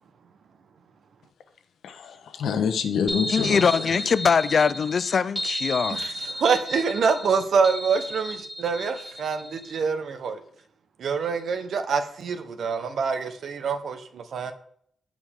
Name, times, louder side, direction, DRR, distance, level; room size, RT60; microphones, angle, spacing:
voice 1, 1.8-3.9, left 6 dB, 85° left, 1.1 m, -27 dB
sound 1, 3.1-9.7, equal, 5° right, 2.1 m, -33 dB
voice 2, 3.3-6.0, left 6 dB, 45° left, 0.3 m, -22 dB
voice 3, 5.9-10.4 11.0-14.5, right 5 dB, 60° right, 1.1 m, -26 dB
15.5 x 5.2 x 3.7 m
wide cardioid pair, 170°, 0 cm